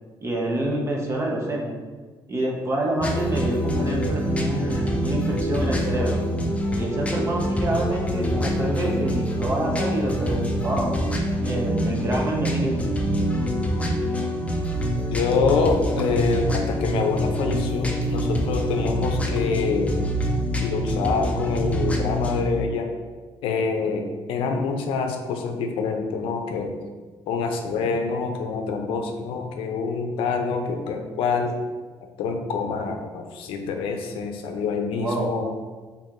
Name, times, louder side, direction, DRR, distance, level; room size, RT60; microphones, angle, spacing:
voice 1, 0.2-1.7 2.3-6.2 6.7-10.9 11.4-12.9 34.9-35.3, right 1 dB, 30° right, -1 dB, 0.9 m, -27 dB
sound 1, 3.0-22.4, equal, 15° left, 0.5 m, -25 dB
voice 2, 15.1-20.0 20.6-22.9 23.4-26.7 27.3-31.5 32.2-35.5, left 5 dB, 85° left, 4 dB, 0.5 m, -26 dB
4.4 x 3.4 x 2.5 m, 1.4 s
cardioid pair, 95°, 9 cm